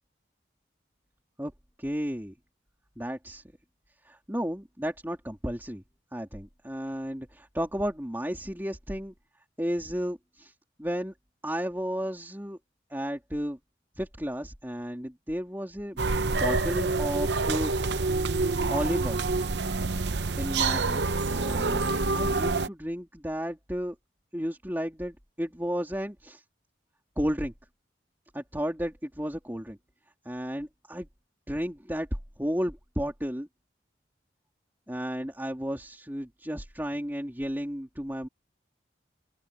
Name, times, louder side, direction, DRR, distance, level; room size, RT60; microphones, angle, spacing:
voice 1, 1.8-2.3 3.0-3.4 4.0-5.8 6.1-9.1 9.6-10.5 10.8-11.1 11.4-12.6 12.9-13.6 13.9-16.1 16.4-17.9 18.7-19.2 20.4-23.9 24.3-26.4 27.2-27.5 28.3-29.8 30.2-31.1 31.5-32.1 32.4-33.5 34.9-38.3, equal, 10° right, 3.1 m, -33 dB
sound 1, 16.0-22.7, right 3 dB, 70° right, 0.8 m, -27 dB
open air
head